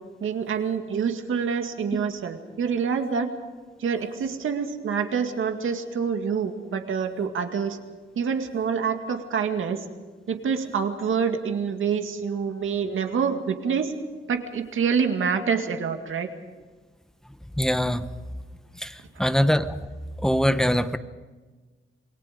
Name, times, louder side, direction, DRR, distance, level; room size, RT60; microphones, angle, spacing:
voice 1, 0.2-3.3 3.8-7.8 8.2-9.8 10.3-13.9 14.3-16.3, right 6 dB, 85° right, 5 dB, 2.2 m, -26 dB
voice 2, 17.6-18.0 18.7-19.8 20.2-21.0, equal, 5° left, 10 dB, 1.0 m, -23 dB
27.5 x 21.5 x 5.2 m, 1.3 s
wide cardioid pair, 125°, 20 cm